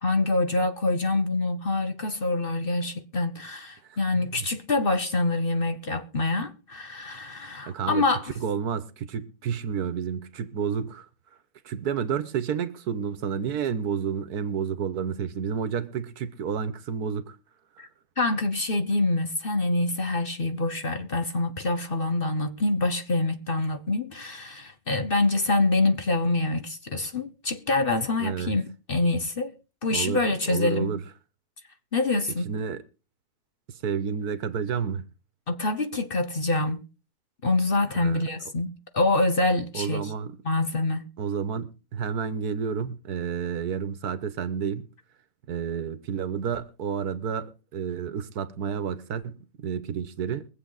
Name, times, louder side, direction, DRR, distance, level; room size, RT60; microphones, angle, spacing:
voice 1, 0.0-8.3 17.8-17.9 18.2-29.5 29.8-31.0 31.9-32.5 35.5-36.8 37.4-40.1 40.4-41.1, left 2 dB, 40° left, 1.0 m, -26 dB
voice 2, 4.1-4.4 7.7-8.0 8.4-11.1 11.6-17.4 28.2-28.5 29.9-30.2 30.5-31.0 32.5-32.8 33.7-35.0 37.9-38.2 39.7-40.4 41.2-44.9 45.5-50.5, right 7 dB, 75° right, 1.5 m, -30 dB
23.0 x 7.9 x 3.9 m
omnidirectional pair, 1.7 m